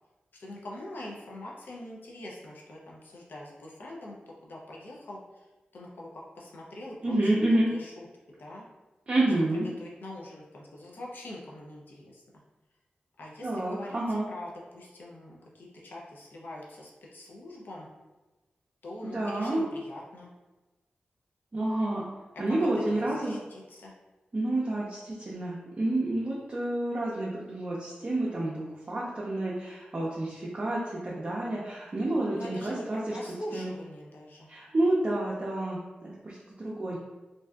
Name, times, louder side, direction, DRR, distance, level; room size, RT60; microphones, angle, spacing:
voice 1, 0.3-5.5 5.7-7.3 7.7-8.1 8.4-8.7 9.8-12.2 13.2-17.9 18.8-20.3 22.3-22.6 22.9-23.9 32.3-34.5, left 1 dB, 75° left, -3 dB, 0.5 m, -43 dB
voice 2, 7.0-7.7 9.1-9.7 13.4-14.3 19.0-19.6 21.5-22.0 22.4-23.4 24.3-33.2 33.5-33.7 34.5-37.0, right 1 dB, 40° right, -5 dB, 0.5 m, -29 dB
2.6 x 2.3 x 2.2 m, 1.1 s
cardioid pair, 50°, 3 cm